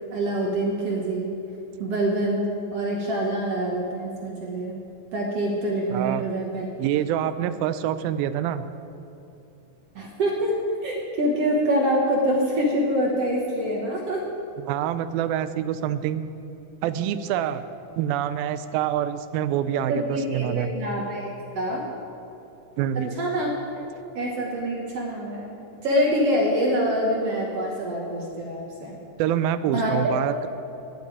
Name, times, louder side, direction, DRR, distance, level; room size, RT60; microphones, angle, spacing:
voice 1, 0.1-1.3 1.8-2.4 2.7-4.8 5.1-6.7 10.0-10.5 10.8-14.2 19.9-21.8 23.1-23.8 24.1-25.6 25.8-29.0 29.7-30.1, equal, 60° right, -2 dB, 1.7 m, -25 dB
voice 2, 5.9-6.2 6.8-8.7 14.7-16.3 16.8-17.6 18.0-20.7 22.8-23.2 29.2-30.5, right 10 dB, 90° right, 12 dB, 2.4 m, -26 dB
11.0 x 7.3 x 9.2 m, 3.0 s
omnidirectional pair, 4.1 m